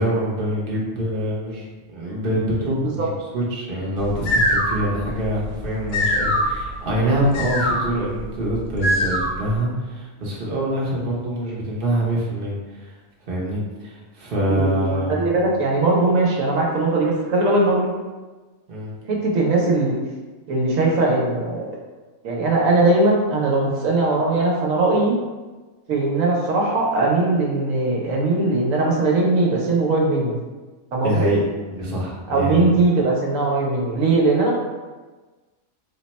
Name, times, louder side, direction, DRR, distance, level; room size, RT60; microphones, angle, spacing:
voice 1, 0.0-12.9 13.3-15.3 18.7-18.9 31.0-31.4 31.7-32.7, right 1 dB, 50° right, -4 dB, 0.9 m, -25 dB
sound 1, 4.0-9.6, equal, 60° left, 0.8 m, -24 dB
voice 2, 14.5-17.9 19.1-19.9 20.5-21.7 22.2-25.2 25.9-30.4 30.9-31.2 32.3-34.5, right 2 dB, 80° right, -2 dB, 1.1 m, -20 dB
3.5 x 2.1 x 4.0 m, 1.3 s
omnidirectional pair, 1.4 m